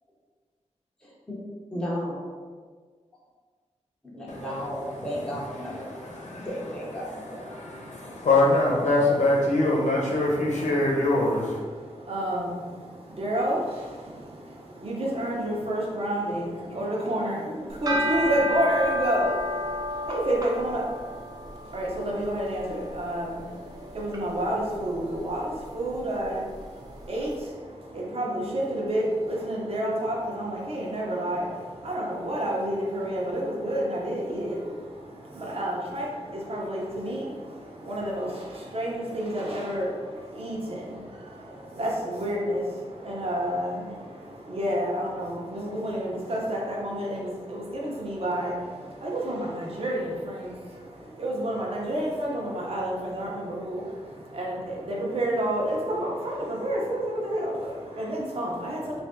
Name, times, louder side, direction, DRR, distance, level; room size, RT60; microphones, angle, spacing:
voice 1, 1.0-1.4 1.7-2.3 4.0-5.8 6.4-7.4, equal, 5° left, -6 dB, 0.7 m, -34 dB
voice 2, 5.7-6.5 7.0-11.6, left 2 dB, 85° left, -3 dB, 0.9 m, -24 dB
voice 3, 11.2-59.0, right 1 dB, 55° right, -3 dB, 0.8 m, -30 dB
sound 1, 17.7-27.0, equal, 35° right, 0.5 m, -33 dB
3.1 x 2.5 x 3.7 m, 1.5 s
wide cardioid pair, 145°, 12 cm